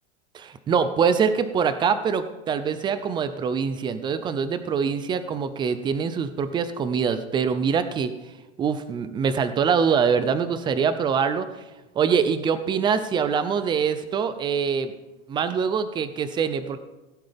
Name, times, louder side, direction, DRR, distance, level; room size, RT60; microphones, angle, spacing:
voice 1, 0.3-8.1 8.6-11.5 12.0-14.9 15.3-16.8, right 6 dB, 15° right, 12 dB, 0.4 m, -24 dB
17.0 x 9.4 x 3.5 m, 1.1 s
supercardioid pair, 145°, 38 cm